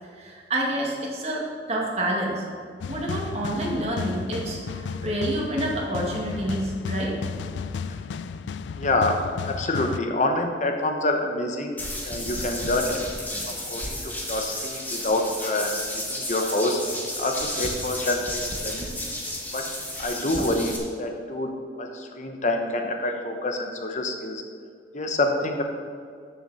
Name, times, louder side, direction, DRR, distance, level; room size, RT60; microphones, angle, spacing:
voice 1, 0.2-2.4 2.9-7.3, right 1 dB, 35° right, -2 dB, 2.1 m, -28 dB
sound 1, 2.8-10.0, left 5 dB, 90° left, 0.4 m, -33 dB
voice 2, 8.8-11.8 12.0-18.9 19.5-19.7 20.0-21.5 21.8-24.4 24.9-25.6, left 2 dB, 45° left, 4 dB, 1.0 m, -27 dB
sound 2, 11.8-20.8, left 1 dB, 10° left, 1.6 m, -32 dB
13.0 x 6.9 x 4.2 m, 2.2 s
head